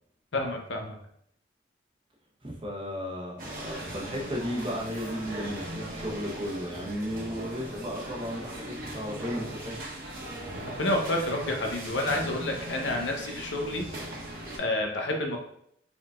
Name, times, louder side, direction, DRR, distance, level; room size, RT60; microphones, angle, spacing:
voice 1, 0.3-1.0 10.8-13.9 14.6-15.4, left 1 dB, 70° left, 2 dB, 0.8 m, -29 dB
voice 2, 2.4-9.8, equal, 30° right, -2 dB, 1.0 m, -34 dB
sound 1, 3.4-14.6, right 1 dB, 50° right, 1.2 m, -39 dB
5.0 x 3.8 x 2.5 m, 0.72 s
head